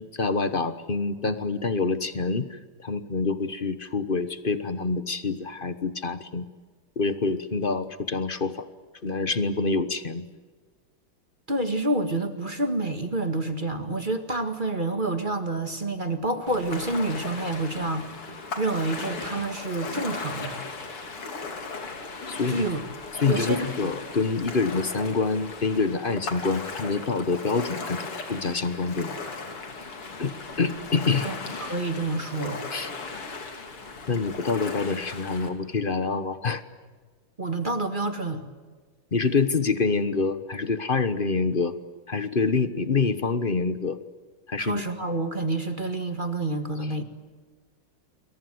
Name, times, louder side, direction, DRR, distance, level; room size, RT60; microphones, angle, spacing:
voice 1, 0.0-6.4 7.0-8.6 9.0-10.3 22.3-22.6 23.2-29.2 30.2-30.3 30.6-31.3 32.7-32.9 34.1-36.6 39.1-41.8 42.1-44.0 44.5-44.8, left 4 dB, 35° left, 12 dB, 1.0 m, -26 dB
voice 2, 11.5-20.6 22.5-22.8 23.3-23.9 31.2-32.6 37.4-38.5 44.6-47.0, right 2 dB, 25° right, 8 dB, 1.8 m, -28 dB
Ocean, 16.5-35.5, left 4 dB, 85° left, 3.9 m, -37 dB
29.0 x 23.0 x 7.9 m, 1.4 s
omnidirectional pair, 2.4 m